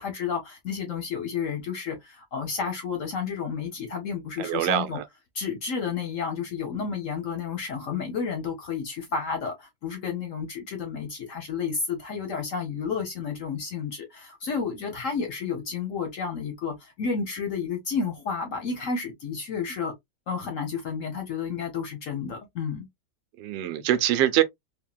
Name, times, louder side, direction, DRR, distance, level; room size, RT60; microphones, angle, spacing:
voice 1, 0.0-5.0 5.3-19.9 20.3-22.9, left 6 dB, 60° left, 0.9 m, -31 dB
voice 2, 4.4-5.0 23.4-24.4, right 12 dB, 85° right, 1.3 m, -24 dB
3.5 x 2.1 x 2.3 m
omnidirectional pair, 2.0 m